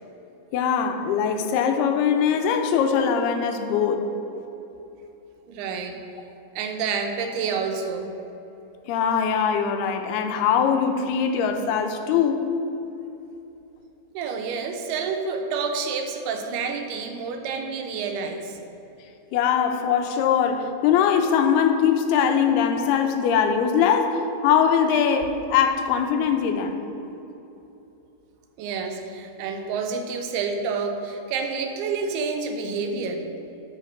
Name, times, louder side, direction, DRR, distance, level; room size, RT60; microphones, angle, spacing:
voice 1, 0.5-4.1 8.9-12.5 19.3-26.8, left 7 dB, 85° left, 5 dB, 2.8 m, -21 dB
voice 2, 5.5-6.0 6.5-8.1 14.1-18.5 28.6-33.2, right 5 dB, 90° right, 4 dB, 2.9 m, -29 dB
11.5 x 5.1 x 6.4 m, 3.0 s
omnidirectional pair, 4.4 m